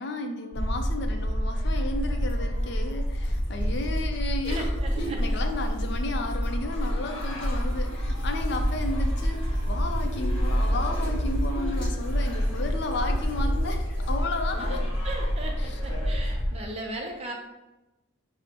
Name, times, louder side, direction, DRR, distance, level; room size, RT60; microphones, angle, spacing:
voice 1, 0.0-4.7 5.2-14.9 15.6-15.7, left 2 dB, 55° left, 5 dB, 0.4 m, -33 dB
sound 1, 0.5-16.6, equal, 70° left, 0.8 m, -27 dB
sound 2, 1.6-16.6, right 2 dB, 20° left, 1.3 m, -46 dB
voice 2, 4.4-5.2 14.6-14.8 15.0-17.3, right 2 dB, 30° right, 0 dB, 0.5 m, -37 dB
4.5 x 2.0 x 2.8 m, 1.0 s
head